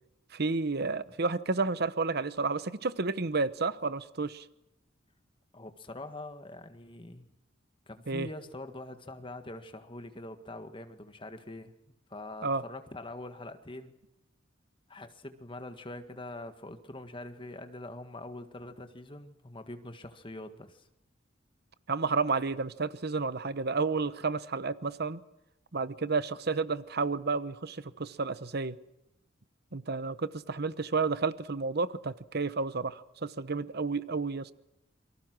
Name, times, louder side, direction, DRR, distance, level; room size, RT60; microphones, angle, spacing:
voice 1, 0.3-4.4 8.1-8.3 12.4-12.6 21.9-25.2 25.7-28.8 29.7-34.5, right 4 dB, 55° right, 1.0 m, -31 dB
voice 2, 5.5-7.3 7.9-11.7 12.1-14.0 14.9-20.9, left 2 dB, 25° left, 1.8 m, -44 dB
27.5 x 24.0 x 6.2 m
head